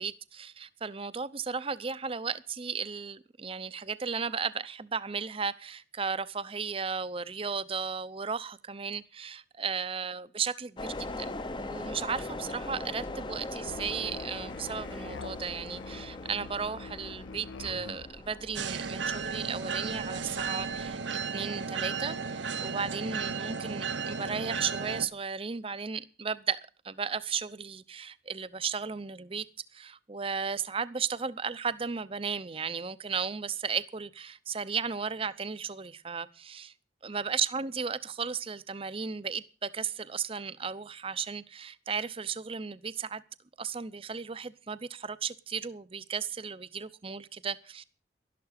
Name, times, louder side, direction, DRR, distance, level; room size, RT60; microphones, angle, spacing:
voice 1, 0.0-26.6 26.8-29.5 29.7-36.7 37.0-43.2 43.6-47.8, right 6 dB, 30° right, 0.6 m, -35 dB
sound 1, 10.8-21.0, left 2 dB, 25° left, 0.7 m, -41 dB
Musical instrument, 13.7-18.2, left 4 dB, 85° left, 0.6 m, -45 dB
sound 2, 18.5-25.0, right 5 dB, 80° right, 1.0 m, -34 dB
12.0 x 12.0 x 6.5 m
head